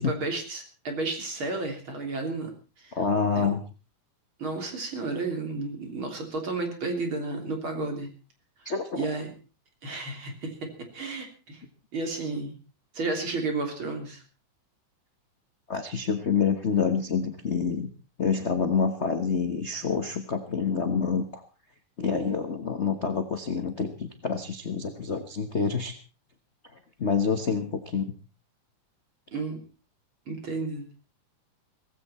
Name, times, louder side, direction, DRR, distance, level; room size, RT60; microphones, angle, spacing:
voice 1, 0.0-2.5 2.8-2.9 3.4-3.5 4.4-8.1 9.0-9.3 9.8-11.6 11.9-12.6 12.9-14.2 29.3-29.6 30.3-30.8, right 3 dB, 40° right, 4 dB, 3.9 m, -32 dB
voice 2, 2.9-3.6 8.6-9.0 15.7-17.9 18.2-21.4 22.0-25.9 27.0-28.1, left 5 dB, 50° left, 6 dB, 0.7 m, -27 dB
17.5 x 16.0 x 4.3 m, 0.35 s
omnidirectional pair, 3.4 m